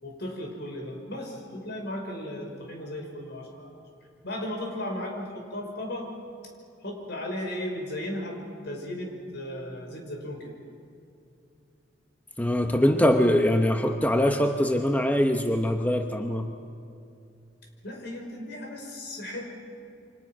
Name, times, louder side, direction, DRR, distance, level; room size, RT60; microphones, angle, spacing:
voice 1, 0.0-3.7 4.2-6.1 6.8-10.5 17.8-19.5, left 1 dB, 60° left, 2 dB, 5.5 m, -35 dB
voice 2, 12.4-16.5, left 1 dB, 10° left, 4 dB, 0.9 m, -23 dB
29.0 x 25.0 x 6.1 m, 2.6 s
head